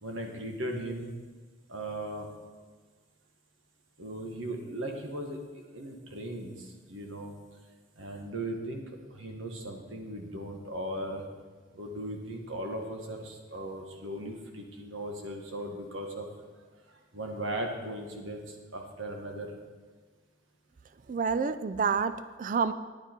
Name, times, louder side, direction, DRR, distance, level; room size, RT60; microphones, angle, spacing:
voice 1, 0.0-1.1 1.7-2.3 4.0-5.4 5.7-7.3 8.0-11.2 11.7-16.3 17.1-19.5, right 1 dB, 90° right, 2 dB, 1.5 m, -37 dB
voice 2, 21.1-22.7, right 5 dB, 40° right, 12 dB, 0.3 m, -28 dB
10.5 x 9.2 x 4.5 m, 1.4 s
head